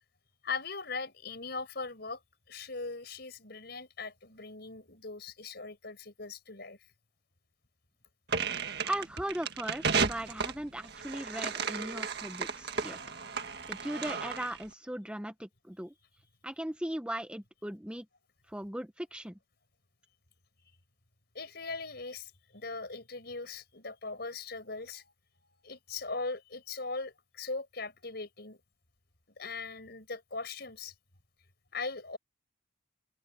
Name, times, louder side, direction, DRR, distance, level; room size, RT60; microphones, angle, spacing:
voice 1, 0.4-2.2 2.5-6.8 21.3-25.1 25.6-28.6 29.4-30.9 31.7-32.2, left 4 dB, 55° left, 5.4 m, -40 dB
sound 1, 8.3-14.6, right 5 dB, 55° right, 1.8 m, -34 dB
voice 2, 8.8-13.0 13.3-13.4 13.7-15.9 16.4-18.1 18.5-19.4, right 1 dB, 5° right, 0.8 m, -38 dB
open air
head